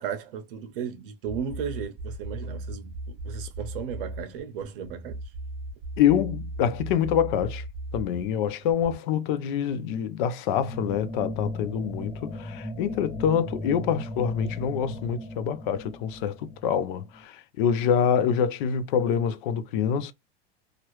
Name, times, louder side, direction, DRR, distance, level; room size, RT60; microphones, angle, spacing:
voice 1, 0.0-5.2, right 7 dB, 60° right, 0.9 m, -35 dB
sound 1, 1.3-8.9, right 2 dB, 10° right, 1.2 m, -37 dB
voice 2, 6.0-7.6 7.9-20.1, left 8 dB, 55° left, 0.5 m, -26 dB
sound 2, 10.5-17.2, left 1 dB, 5° left, 0.7 m, -37 dB
2.9 x 2.5 x 3.0 m
supercardioid pair, 165°, 30 cm